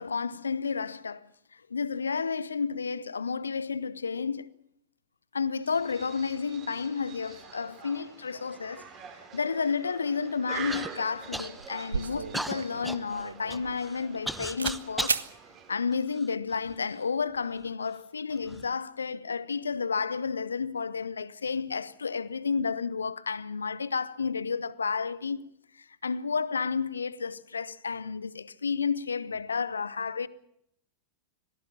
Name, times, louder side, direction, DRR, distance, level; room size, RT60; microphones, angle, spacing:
voice 1, 0.0-4.5 5.3-8.9 9.3-15.2 15.7-25.4 26.0-30.3, left 5 dB, 75° left, 0.8 m, -31 dB
sound 1, 5.6-16.0, right 6 dB, 35° right, 5.2 m, -46 dB
Human voice / Cough, 10.7-10.9 11.3-11.8 12.3-15.2 15.9-16.8 17.5-17.6 18.3-18.7, right 1 dB, 5° right, 1.2 m, -36 dB
sound 2, 11.2-11.3 11.6-14.3 14.6-14.8 15.1-15.3, right 5 dB, 75° right, 0.9 m, -33 dB
26.0 x 17.5 x 7.2 m
figure-of-eight pair, 90°, 0 cm